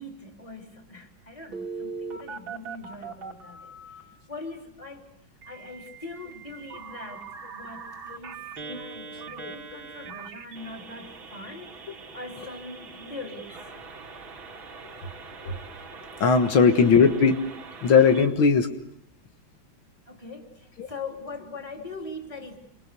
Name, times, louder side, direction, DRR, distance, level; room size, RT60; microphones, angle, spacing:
voice 1, 0.0-3.7 4.3-5.0 5.4-7.3 7.5-13.8 16.4-16.6 20.1-22.6, left 2 dB, 15° left, 3 dB, 3.4 m, -41 dB
Telephone, 1.5-4.0 5.4-18.3, right 4 dB, 85° right, 3.8 m, -41 dB
voice 2, 16.2-17.4 17.8-18.7 20.8-20.9, left 5 dB, 85° left, 7 dB, 2.3 m, -19 dB
28.0 x 25.0 x 6.8 m, 0.78 s
omnidirectional pair, 2.1 m